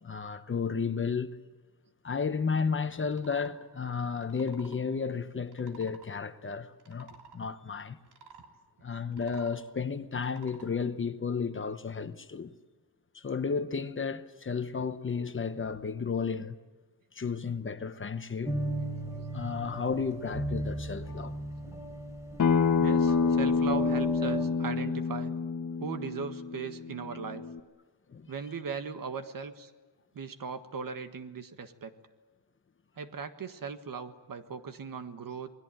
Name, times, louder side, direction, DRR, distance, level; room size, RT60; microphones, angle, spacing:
voice 1, 0.0-1.4 2.0-8.0 8.8-12.5 13.1-16.6 17.1-18.5 19.3-21.3 28.1-28.3, left 5 dB, 30° left, 1.0 m, -33 dB
sound 1, 3.1-3.5 4.2-4.8 5.5-6.1 6.7-7.4 8.0-8.5 9.0-9.6 10.2-10.7, right 6 dB, 85° right, 3.4 m, -53 dB
sound 2, 18.4-24.4, right 1 dB, 10° right, 3.6 m, -36 dB
Acoustic guitar, 22.4-27.6, left 5 dB, 50° left, 1.4 m, -28 dB
voice 2, 22.8-25.3 25.8-27.4 28.3-29.7 30.1-31.9 33.0-35.5, right 5 dB, 60° right, 1.7 m, -38 dB
28.5 x 21.0 x 9.0 m
wide cardioid pair, 170°, 39 cm